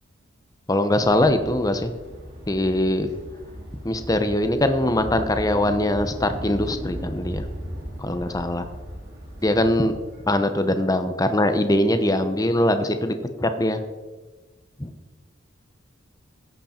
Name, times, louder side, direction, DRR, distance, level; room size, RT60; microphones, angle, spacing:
voice 1, 0.7-1.9 2.5-3.1 3.8-7.4 8.0-8.6 9.4-9.9 10.3-13.8 14.8-14.9, left 1 dB, 20° left, 8 dB, 0.8 m, -22 dB
sound 1, 0.9-10.4, equal, 55° right, 3.4 m, -37 dB
15.0 x 8.1 x 4.4 m, 1.3 s
head